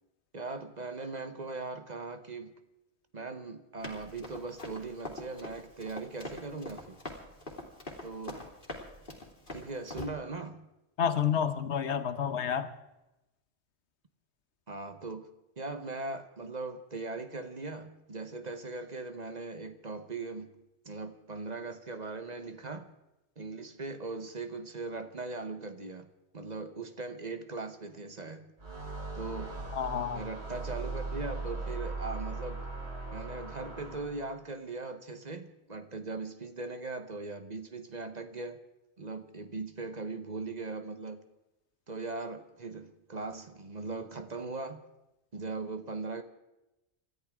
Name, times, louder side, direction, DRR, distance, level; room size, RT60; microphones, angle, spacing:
voice 1, 0.3-2.5 3.1-7.0 8.0-8.5 9.5-10.7 14.7-15.3 15.6-20.6 20.8-22.9 23.4-26.1 26.3-28.5 29.1-29.6 30.1-32.6 33.1-38.6 39.0-41.2 41.9-44.8 45.3-46.2, right 3 dB, 40° right, 8 dB, 1.2 m, -39 dB
Run, 3.8-10.1, left 1 dB, 50° left, 3.0 m, -43 dB
voice 2, 11.0-12.7 29.7-30.2, left 8 dB, 85° left, 12 dB, 1.2 m, -29 dB
sound 1, 28.6-34.3, right 3 dB, 75° right, 3.3 m, -39 dB
27.0 x 13.5 x 3.7 m, 0.96 s
omnidirectional pair, 1.1 m